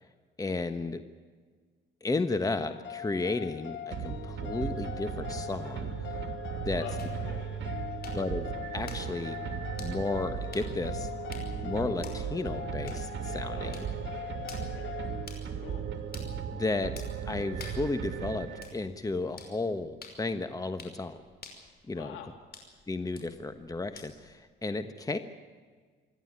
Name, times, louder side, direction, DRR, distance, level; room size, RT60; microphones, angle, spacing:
voice 1, 0.4-1.0 2.0-6.2 6.6-6.8 8.1-8.5 8.7-9.4 9.8-11.1 11.6-13.8 16.5-16.9 17.3-21.2 21.9-22.2 22.9-25.2, left 3 dB, 20° left, 9 dB, 1.3 m, -33 dB
sound 1, 2.4-15.3, left 10 dB, 70° left, 1.2 m, -42 dB
sound 2, 3.9-19.0, right 7 dB, 70° right, 2.8 m, -37 dB
voice 2, 6.7-7.5 13.4-13.8 14.6-15.0 15.6-15.9 21.9-22.4, left 8 dB, 90° left, 5 dB, 3.4 m, -44 dB
sound 3, 7.0-24.4, left 4 dB, 50° left, 5.5 m, -52 dB
27.0 x 11.5 x 9.8 m, 1.6 s
cardioid pair, 90°, 20 cm